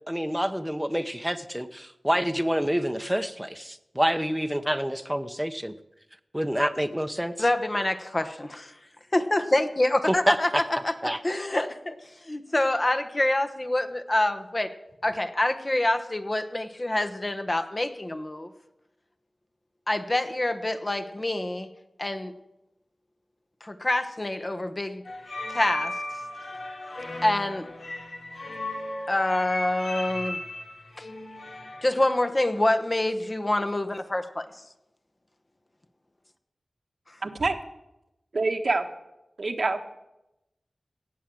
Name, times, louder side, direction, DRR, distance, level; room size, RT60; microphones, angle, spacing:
voice 1, 0.1-5.7 6.3-7.3 10.1-10.6 11.0-11.2, equal, 5° right, 9 dB, 0.9 m, -27 dB
voice 2, 7.4-8.7 9.1-10.9 11.2-11.9 12.2-14.7 15.0-18.5 19.9-21.7 22.0-22.3 23.6-25.0 25.5-26.0 27.2-27.7 29.1-30.4 31.0-31.1 31.8-34.5, left 1 dB, 35° left, 7 dB, 1.1 m, -26 dB
sound 1, 25.1-32.0, left 1 dB, 80° left, 3.1 m, -36 dB
voice 3, 37.2-37.6 38.3-38.9 39.4-39.8, right 3 dB, 65° right, 6 dB, 1.2 m, -26 dB
17.5 x 7.4 x 7.7 m, 0.92 s
wide cardioid pair, 65°, 0 cm